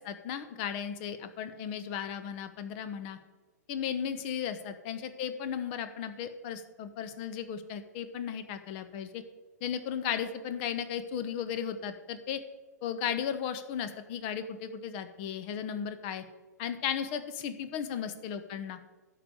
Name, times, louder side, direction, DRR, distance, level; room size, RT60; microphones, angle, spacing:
voice 1, 0.0-3.2 3.7-9.2 9.6-12.4 12.8-16.2 16.6-18.8, left 8 dB, 35° left, 10 dB, 1.0 m, -35 dB
11.0 x 4.9 x 8.0 m, 1.2 s
figure-of-eight pair, 110°, 9 cm